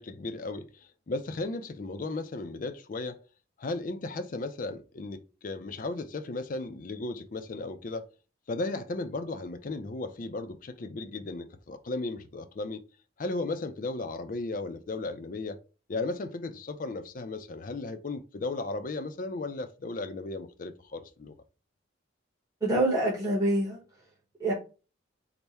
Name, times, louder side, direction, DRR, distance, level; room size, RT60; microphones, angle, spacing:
voice 1, 0.0-3.2 3.6-8.1 8.5-12.8 13.2-15.6 15.9-21.3, left 2 dB, 45° left, 0.4 m, -35 dB
voice 2, 22.6-23.8 24.4-24.5, right 1 dB, 20° right, 1.1 m, -25 dB
3.4 x 2.1 x 4.2 m
head